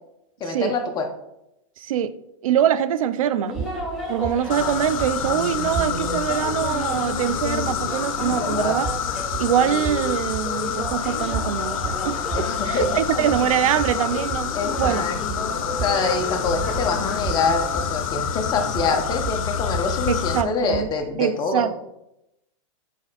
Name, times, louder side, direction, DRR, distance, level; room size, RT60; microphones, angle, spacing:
voice 1, 0.4-1.1 8.3-8.8 12.3-13.0 14.5-21.7, left 4 dB, 25° left, 4 dB, 1.0 m, -26 dB
voice 2, 1.8-2.1 2.4-3.6 4.1-8.9 9.4-15.0 20.1-20.9 21.2-21.9, right 9 dB, 90° right, 14 dB, 0.5 m, -24 dB
sound 1, 3.4-17.8, left 1 dB, 5° right, 1.9 m, -33 dB
sound 2, 3.6-6.4 8.8-21.1, right 6 dB, 20° right, 0.4 m, -35 dB
sound 3, 4.5-20.4, left 8 dB, 85° left, 0.7 m, -28 dB
6.4 x 4.3 x 4.1 m, 0.84 s
supercardioid pair, 140°, 17 cm